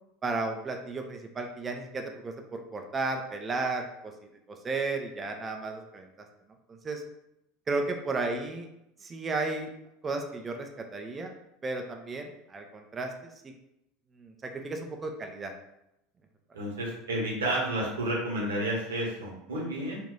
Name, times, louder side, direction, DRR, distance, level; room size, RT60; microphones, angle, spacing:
voice 1, 0.2-4.1 4.5-6.1 6.7-7.0 7.7-8.7 9.0-9.7 10.0-11.3 11.6-13.1 13.4-13.5 14.2-15.5, right 3 dB, 25° right, 4 dB, 0.5 m, -33 dB
voice 2, 16.5-20.0, right 1 dB, 75° right, -3 dB, 1.1 m, -31 dB
3.1 x 2.6 x 3.9 m, 0.85 s
figure-of-eight pair, 75°, 0 cm